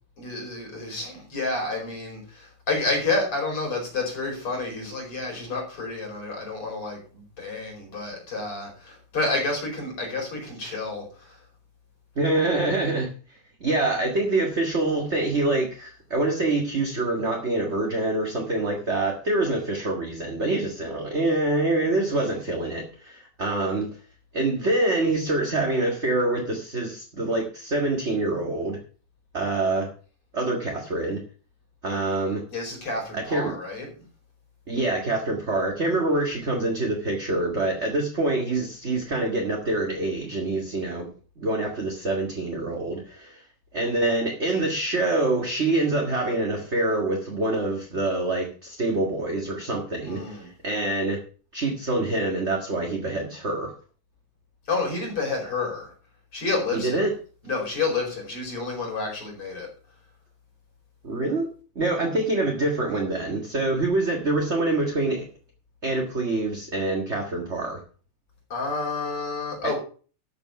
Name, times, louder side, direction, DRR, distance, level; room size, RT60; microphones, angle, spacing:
voice 1, 0.2-11.4 32.5-33.9 50.0-50.5 54.7-55.9 56.3-57.0 57.4-59.7 68.5-69.8, left 3 dB, 45° left, 0 dB, 5.7 m, -29 dB
voice 2, 12.1-13.1 13.6-23.9 24.3-28.8 29.3-29.9 30.3-31.2 31.8-32.4 33.1-33.5 34.7-41.1 41.4-43.4 43.7-51.2 51.5-53.7 56.7-57.1 61.0-61.5 61.7-65.2 65.8-67.8 69.6-69.7, right 2 dB, 30° right, 1 dB, 1.5 m, -25 dB
12.5 x 7.1 x 5.9 m, 0.40 s
omnidirectional pair, 3.6 m